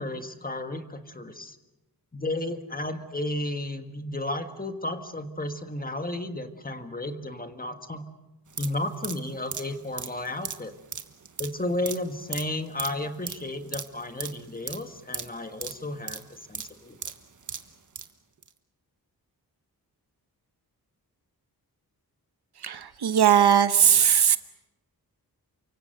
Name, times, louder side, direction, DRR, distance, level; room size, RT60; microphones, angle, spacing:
voice 1, 0.0-1.6 2.1-8.0 8.6-10.7 11.4-17.1, left 1 dB, 25° left, 7 dB, 1.6 m, -33 dB
sound 1, 8.5-18.1 18.4-18.5, right 6 dB, 50° right, 1.4 m, -38 dB
voice 2, 22.6-24.4, right 9 dB, 85° right, 12 dB, 1.1 m, -19 dB
29.0 x 24.5 x 6.8 m, 1.0 s
wide cardioid pair, 140°, 38 cm